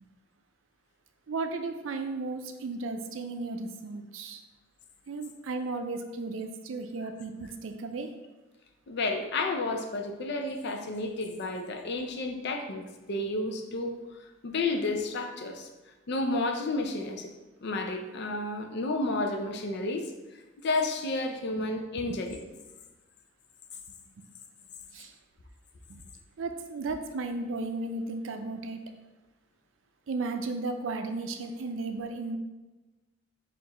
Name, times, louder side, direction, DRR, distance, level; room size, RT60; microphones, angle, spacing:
voice 1, 1.3-4.4 5.1-8.1 24.9-25.1 25.9-26.0 26.4-28.8 30.1-32.4, right 3 dB, 75° right, 6 dB, 0.4 m, -34 dB
voice 2, 8.9-14.0 14.4-15.7 16.1-17.3 17.6-20.1 20.6-22.4, left 2 dB, 60° left, 4 dB, 0.5 m, -31 dB
4.5 x 2.5 x 4.2 m, 1.2 s
head